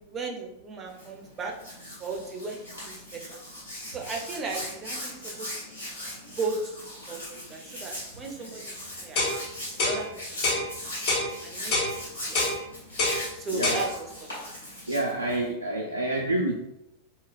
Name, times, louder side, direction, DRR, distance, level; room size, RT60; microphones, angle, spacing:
voice 1, 0.0-1.5 2.0-3.4 3.9-5.7 6.4-6.7 7.1-9.2 9.8-10.1 11.4-12.4 13.4-14.4, right 3 dB, 25° right, 1 dB, 0.5 m, -36 dB
Hands, 0.9-15.5, left 1 dB, 80° left, 1.0 m, -39 dB
sound 1, 9.2-9.4 9.8-10.0 10.4-10.6 11.1-11.3 11.7-11.9 12.4-12.6 13.0-13.2 13.6-13.8, left 2 dB, 45° left, 0.8 m, -25 dB
voice 2, 13.5-13.9 14.9-16.6, right 1 dB, 85° right, -2 dB, 0.3 m, -28 dB
2.7 x 2.3 x 3.2 m, 0.87 s
figure-of-eight pair, 90°, 0 cm